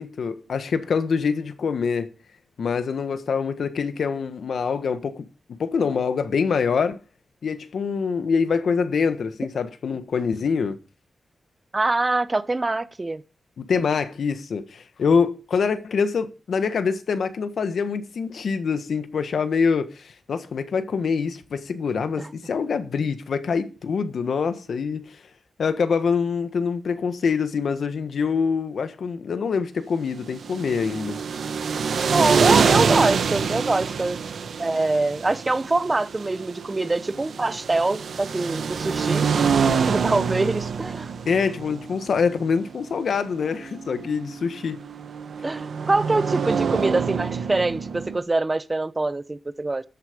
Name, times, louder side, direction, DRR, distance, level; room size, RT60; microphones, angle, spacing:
voice 1, 0.0-2.1 2.6-7.0 7.4-10.8 13.6-25.2 25.6-31.2 41.2-44.8, left 5 dB, 70° left, 1.5 m, -25 dB
voice 2, 11.7-13.2 22.2-22.3 32.1-34.2 34.6-39.3 39.9-41.1 45.4-49.8, right 2 dB, 20° right, 0.8 m, -24 dB
sound 1, 30.3-48.2, right 6 dB, 80° right, 1.6 m, -26 dB
13.5 x 8.3 x 5.2 m
wide cardioid pair, 150°, 0 cm